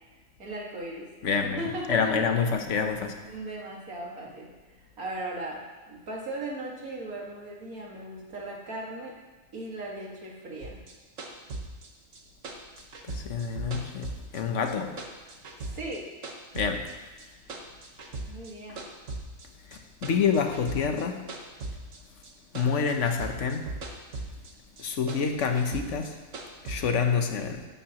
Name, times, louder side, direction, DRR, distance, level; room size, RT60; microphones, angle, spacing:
voice 1, 0.4-2.2 3.2-9.1 9.5-10.8 15.6-16.2 18.3-18.8, right 2 dB, 90° right, -2 dB, 2.3 m, -38 dB
voice 2, 1.2-1.6 1.9-3.2 13.1-15.0 16.5-16.9 19.7-21.3 22.5-23.7 24.8-26.2 26.6-27.7, left 6 dB, 60° left, 6 dB, 1.1 m, -27 dB
sound 1, 10.6-14.7 15.0-16.9 17.2-18.5 18.8-22.3 22.6-24.5 24.8-26.8, right 2 dB, 65° right, 1.5 m, -38 dB
12.5 x 11.0 x 3.0 m, 1.2 s
omnidirectional pair, 1.5 m